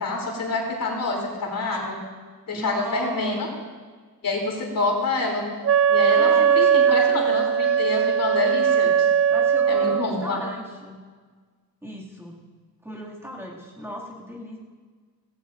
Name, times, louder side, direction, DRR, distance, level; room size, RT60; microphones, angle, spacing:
voice 1, 0.0-2.0 2.5-3.5 4.2-5.4 5.9-9.1 9.7-10.4, left 3 dB, 65° left, -1 dB, 3.3 m, -27 dB
voice 2, 2.5-3.5 6.1-7.5 9.3-11.0 11.8-12.4 12.8-14.6, equal, 5° right, -5 dB, 2.4 m, -36 dB
Wind instrument woodwind instrument, 5.6-10.1, right 7 dB, 40° right, 0.5 m, -19 dB
17.5 x 17.0 x 2.6 m, 1.5 s
wide cardioid pair, 135°, 36 cm